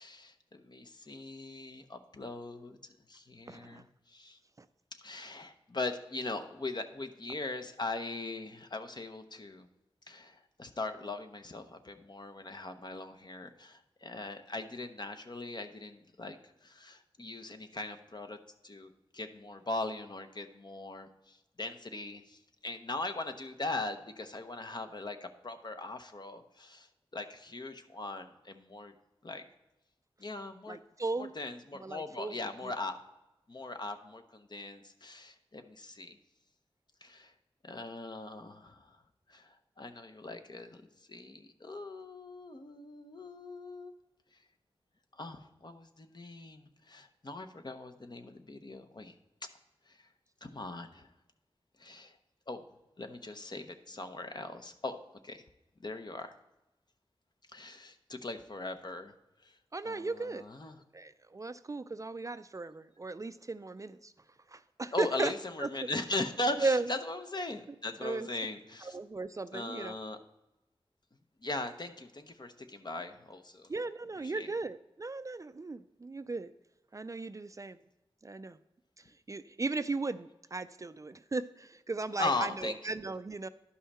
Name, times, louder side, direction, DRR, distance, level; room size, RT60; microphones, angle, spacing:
voice 1, 0.0-4.4 4.9-9.7 10.1-18.4 18.6-28.9 29.2-29.4 30.2-30.8 31.2-33.0 33.5-36.2 37.0-37.3 37.6-39.0 39.3-43.9 45.1-49.1 49.9-50.1 50.4-51.1 51.8-52.2 52.5-52.6 53.0-55.0 55.2-55.4 55.8-56.3 57.5-59.1 59.4-59.6 59.8-60.8 64.9-69.0 69.5-70.2 71.4-73.7 74.2-74.5 82.2-82.8, left 2 dB, 45° left, 7 dB, 0.8 m, -40 dB
voice 2, 3.5-3.8 4.6-4.7 30.7-31.3 31.8-32.3 32.6-32.7 59.7-60.4 60.9-64.1 64.5-65.3 65.6-65.7 66.6-66.9 68.0-68.3 68.8-69.9 73.7-76.5 76.9-77.8 78.2-78.6 79.3-83.5, right 3 dB, 30° right, 13 dB, 0.3 m, -36 dB
11.5 x 5.6 x 4.2 m, 0.96 s
wide cardioid pair, 60°, 10 cm